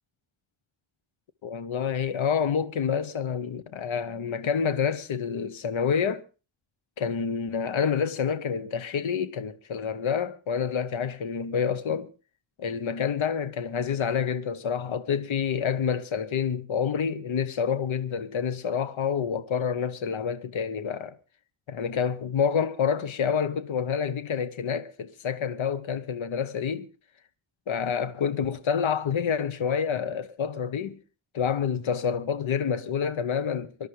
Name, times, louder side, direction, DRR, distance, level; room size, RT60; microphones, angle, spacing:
voice 1, 1.4-6.2 7.0-12.1 12.6-21.1 21.7-26.9 27.7-31.0 31.3-33.9, left 7 dB, 70° left, 1.0 m, -28 dB
24.0 x 12.5 x 3.2 m
wide cardioid pair, 145°, 49 cm